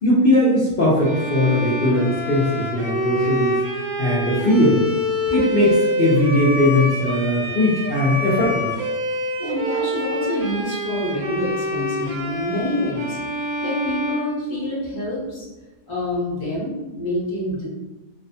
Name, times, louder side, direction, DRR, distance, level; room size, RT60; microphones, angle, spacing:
voice 1, 0.0-4.8 5.3-8.7, left 1 dB, 60° left, -7 dB, 0.5 m, -19 dB
Bowed string instrument, 1.0-15.1, equal, 85° right, 1.1 m, -26 dB
voice 2, 9.4-15.4 15.9-17.6, left 1 dB, 25° left, -8 dB, 0.9 m, -27 dB
2.7 x 2.1 x 2.7 m, 1.1 s
omnidirectional pair, 1.5 m